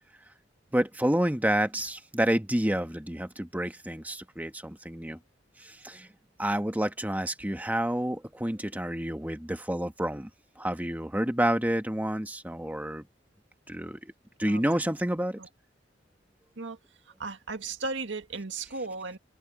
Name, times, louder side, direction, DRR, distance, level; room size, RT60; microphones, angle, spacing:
voice 1, 0.7-5.2 5.6-6.1 6.4-10.3 10.6-13.1 13.7-14.1 14.4-15.4, right 1 dB, 10° right, 1.6 m, -29 dB
voice 2, 17.2-19.2, right 3 dB, 85° right, 1.9 m, -35 dB
head